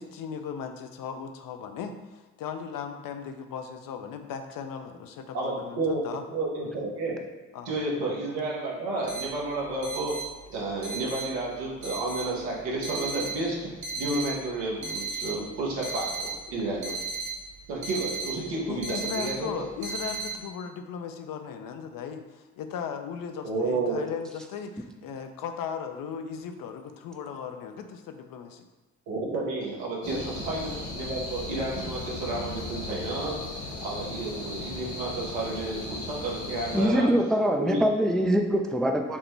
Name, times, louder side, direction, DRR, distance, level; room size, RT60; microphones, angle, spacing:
voice 1, 0.0-6.2 7.5-7.7 18.7-28.6, left 7 dB, 55° left, 6 dB, 0.5 m, -37 dB
voice 2, 5.3-6.0 6.3-7.2 7.6-10.2 10.5-13.6 14.0-16.9 17.7-19.5 23.4-24.0 29.1-33.4 33.8-37.1 37.6-37.8, right 2 dB, 80° right, -4 dB, 1.1 m, -31 dB
sound 1, 9.1-20.3, right 4 dB, 50° right, 1.3 m, -35 dB
sound 2, 30.0-36.8, left 2 dB, 90° left, 0.8 m, -37 dB
voice 3, 36.7-39.2, equal, ahead, 3 dB, 0.3 m, -23 dB
5.2 x 2.1 x 3.1 m, 1.2 s
hypercardioid pair, 50°, 39 cm